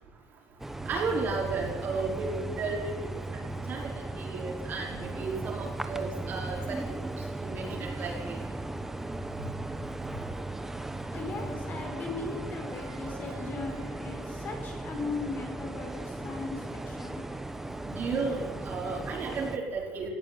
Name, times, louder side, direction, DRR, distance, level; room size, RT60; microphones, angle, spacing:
sound 1, 0.6-19.6, right 2 dB, 5° right, 1.1 m, -37 dB
voice 1, 0.9-2.9 3.4-7.0 7.4-8.4 12.7-12.9 13.3-13.4 17.8-20.1, right 4 dB, 30° right, -1 dB, 4.7 m, -34 dB
voice 2, 11.1-17.2, left 3 dB, 30° left, 2 dB, 4.6 m, -38 dB
18.0 x 17.5 x 9.6 m, 1.2 s
cardioid pair, 180°, 6 cm